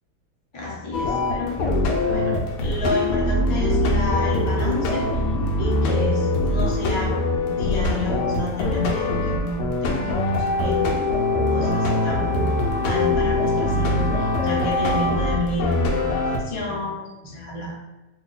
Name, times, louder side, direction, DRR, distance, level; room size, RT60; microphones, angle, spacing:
voice 1, 0.5-1.6 2.1-5.1 5.6-10.8 11.5-12.5 12.8-15.7 16.0-17.8, left 2 dB, 40° left, -5 dB, 0.4 m, -30 dB
sound 1, 0.9-16.4, left 2 dB, 75° left, 1.1 m, -22 dB
2.8 x 2.7 x 3.9 m, 1.0 s
omnidirectional pair, 1.9 m